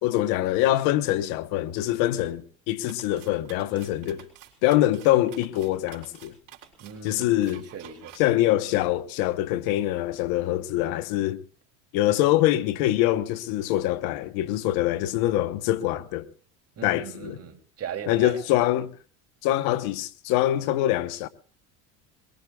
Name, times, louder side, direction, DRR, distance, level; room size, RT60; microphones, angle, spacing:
voice 1, 0.0-4.3 4.6-6.3 7.0-7.7 8.2-11.4 11.9-16.3 16.8-17.4 18.1-18.9 19.4-21.3, left 14 dB, 75° left, 1.1 m, -24 dB
sound 1, 2.8-8.2, right 11 dB, 60° right, 4.4 m, -50 dB
voice 2, 6.8-8.2 16.8-18.4, right 7 dB, 40° right, 2.9 m, -38 dB
23.0 x 22.5 x 2.3 m
supercardioid pair, 95°, 36 cm